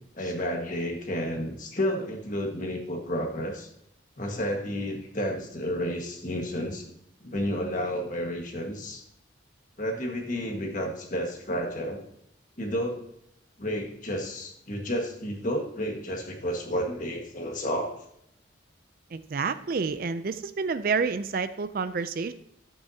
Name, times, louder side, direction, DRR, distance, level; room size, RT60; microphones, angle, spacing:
voice 1, 0.2-3.7 4.2-6.9 7.2-9.0 9.8-12.0 12.6-13.0 13.6-18.0, equal, 40° left, 2 dB, 1.6 m, -31 dB
voice 2, 19.1-22.3, right 5 dB, 45° right, 12 dB, 0.4 m, -29 dB
11.0 x 8.4 x 2.8 m, 0.74 s
head